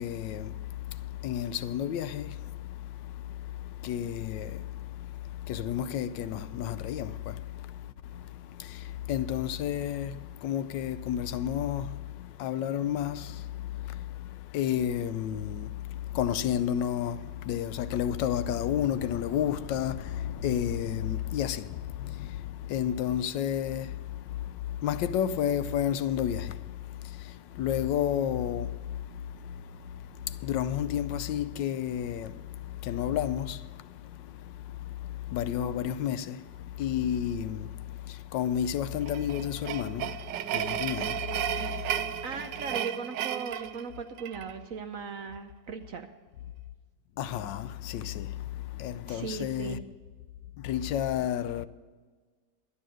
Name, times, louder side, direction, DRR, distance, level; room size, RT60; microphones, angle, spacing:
voice 1, 0.0-42.3 47.2-49.8 50.6-51.7, left 10 dB, 80° left, 1.3 m, -32 dB
sound 1, 39.0-44.5, right 10 dB, 80° right, 1.2 m, -33 dB
voice 2, 42.2-46.1 49.1-49.8, right 5 dB, 65° right, 0.9 m, -38 dB
11.5 x 9.9 x 6.3 m
omnidirectional pair, 1.9 m